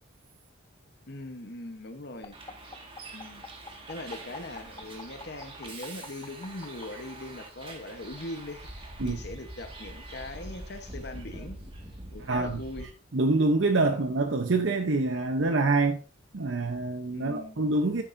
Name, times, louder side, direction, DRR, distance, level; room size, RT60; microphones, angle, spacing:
voice 1, 1.1-2.4 3.1-3.4 3.7-11.6 12.1-12.9 13.9-14.0 17.1-17.6, left 1 dB, 50° left, 1.0 m, -41 dB
sound 1, 2.2-6.8 8.0-10.3, left 3 dB, 20° left, 0.9 m, -47 dB
Bus, 2.3-12.9, right 1 dB, 25° right, 1.7 m, -44 dB
voice 2, 12.3-12.6 13.1-16.0 16.3-18.0, right 3 dB, 65° right, 0.7 m, -26 dB
14.0 x 7.5 x 2.6 m
head